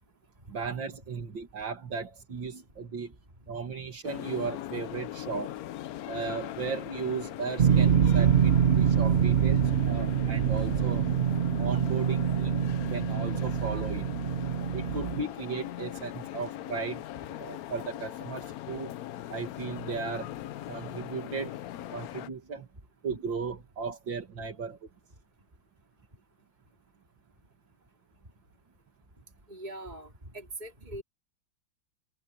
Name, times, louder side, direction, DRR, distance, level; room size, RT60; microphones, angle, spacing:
voice 1, 0.5-3.1 3.5-5.6 6.1-11.1 11.6-14.1 14.7-17.0 17.4-19.0 19.3-20.3 20.7-21.6 21.9-22.7 23.0-24.8, right 5 dB, 80° right, 3.0 m, -36 dB
sound 1, 4.0-22.3, left 13 dB, 70° left, 0.9 m, -40 dB
sound 2, 7.6-15.2, right 8 dB, 60° right, 0.6 m, -25 dB
voice 2, 29.5-31.0, right 1 dB, 20° right, 4.5 m, -42 dB
omnidirectional pair, 2.0 m